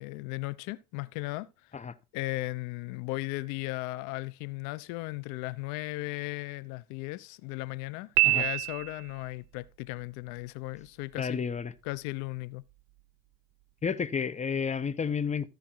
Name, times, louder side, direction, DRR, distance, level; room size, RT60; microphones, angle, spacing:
voice 1, 0.0-1.5 2.1-11.4 11.8-12.6, left 20 dB, 75° left, 0.8 m, -36 dB
Piano, 8.2-9.3, right 24 dB, 60° right, 0.4 m, -26 dB
voice 2, 11.2-11.7 13.8-15.5, left 6 dB, 25° left, 0.9 m, -31 dB
13.5 x 5.1 x 4.6 m
supercardioid pair, 85°, 30 cm